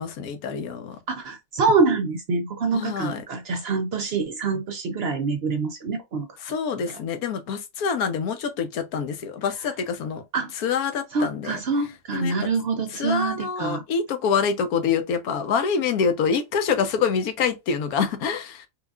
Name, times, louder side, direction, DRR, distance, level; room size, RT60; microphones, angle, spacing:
voice 1, 0.0-1.0 2.7-3.2 6.4-10.2 10.6-11.6 12.1-12.5 12.9-18.7, left 6 dB, 80° left, 1.2 m, -26 dB
voice 2, 1.1-6.5 10.3-10.5 11.1-13.8, right 4 dB, 60° right, 0.7 m, -25 dB
4.7 x 2.4 x 2.3 m
omnidirectional pair, 1.6 m